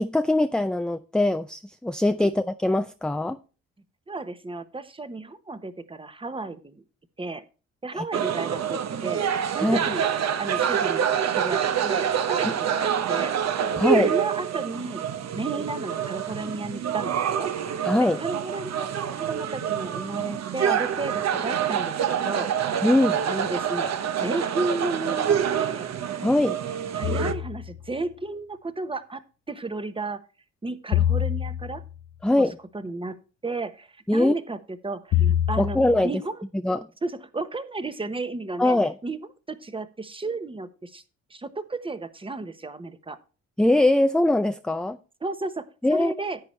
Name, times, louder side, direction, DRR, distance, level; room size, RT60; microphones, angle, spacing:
voice 1, 0.0-3.4 7.9-8.0 9.6-9.8 13.8-14.1 17.8-18.2 22.8-23.2 26.2-26.6 32.2-32.6 34.1-34.3 35.2-36.1 36.6-36.8 38.6-38.9 43.6-45.0 45.8-46.1, left 1 dB, 5° left, 10 dB, 0.4 m, -22 dB
voice 2, 4.1-6.8 7.2-7.4 7.8-9.2 9.5-10.1 10.4-13.3 14.0-15.0 15.3-17.5 18.0-22.5 23.2-24.0 24.2-25.9 26.9-30.2 30.6-31.8 32.4-32.5 32.7-34.6 34.8-35.8 36.0-36.4 37.0-38.8 39.0-39.2 39.5-41.0 41.3-43.2 45.2-46.4, right 3 dB, 15° right, 12 dB, 1.0 m, -33 dB
sound 1, 8.1-27.3, right 8 dB, 60° right, 1.0 m, -26 dB
sound 2, 27.0-27.8 30.9-32.0 35.1-36.0, left 11 dB, 65° left, 0.6 m, -25 dB
10.5 x 8.5 x 3.2 m, 0.34 s
cardioid pair, 90°, 30 cm